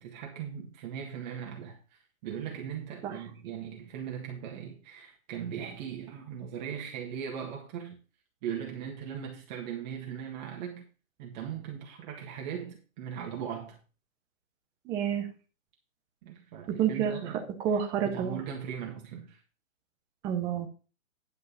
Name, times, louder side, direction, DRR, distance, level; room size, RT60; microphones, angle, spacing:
voice 1, 0.0-7.9 8.4-10.8 11.2-13.8 16.2-17.5 18.0-19.4, right 8 dB, 30° right, 1.7 m, -39 dB
voice 2, 14.9-15.3 16.7-17.1 17.6-18.4 20.2-20.7, right 8 dB, 10° right, 0.5 m, -28 dB
10.5 x 5.3 x 5.6 m
hypercardioid pair, 140°, 41 cm